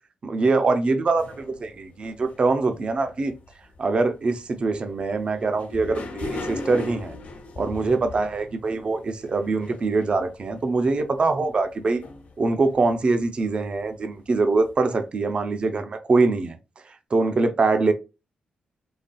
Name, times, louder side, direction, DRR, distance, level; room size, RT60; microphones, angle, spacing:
voice 1, 0.2-3.3 3.8-7.1 7.6-12.0 12.4-16.6 17.1-17.9, right 3 dB, 35° right, 0.5 m, -23 dB
sound 1, 1.2-3.8 4.1-13.9 14.4-14.5 14.7-14.8, left 3 dB, 55° left, 1.1 m, -39 dB
4.0 x 3.3 x 2.2 m
wide cardioid pair, 155°, 3 cm